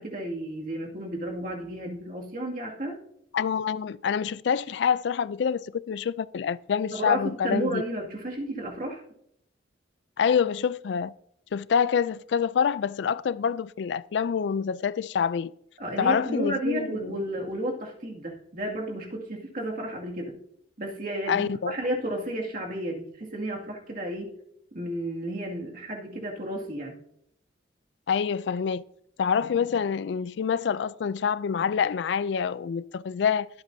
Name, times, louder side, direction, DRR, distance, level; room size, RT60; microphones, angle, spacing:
voice 1, 0.0-3.0 6.9-9.0 15.8-20.4 20.8-24.4 24.7-27.0, right 1 dB, 50° right, 2.2 m, -32 dB
voice 2, 3.3-7.8 10.2-11.1 11.5-15.5 16.0-17.2 21.3-21.7 28.1-28.8 29.2-33.5, left 7 dB, 70° left, 0.3 m, -26 dB
22.0 x 8.1 x 2.7 m
head